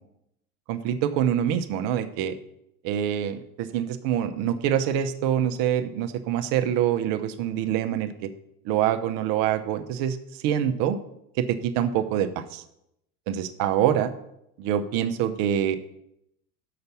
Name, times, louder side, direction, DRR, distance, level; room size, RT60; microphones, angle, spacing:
voice 1, 0.7-2.3 2.8-8.3 8.6-10.2 10.4-11.0 11.4-12.6 13.3-14.1 14.6-15.8, right 10 dB, 50° right, 9 dB, 0.9 m, -25 dB
6.6 x 5.9 x 7.0 m, 0.80 s
figure-of-eight pair, 75°, 45 cm